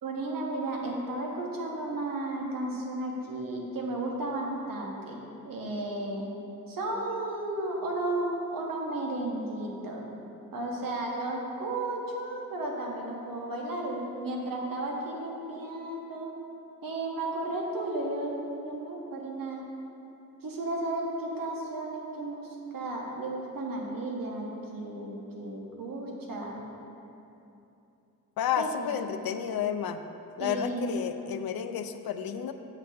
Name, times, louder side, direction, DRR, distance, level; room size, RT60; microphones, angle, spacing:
voice 1, 0.0-6.2 6.7-10.1 10.5-16.3 16.8-19.6 20.4-26.6 28.6-29.1 30.4-30.9, right 2 dB, 70° right, -1 dB, 1.2 m, -34 dB
voice 2, 28.4-30.0 30.4-32.5, left 8 dB, 80° left, 9 dB, 0.5 m, -31 dB
8.1 x 3.4 x 6.4 m, 2.9 s
wide cardioid pair, 110°, 35 cm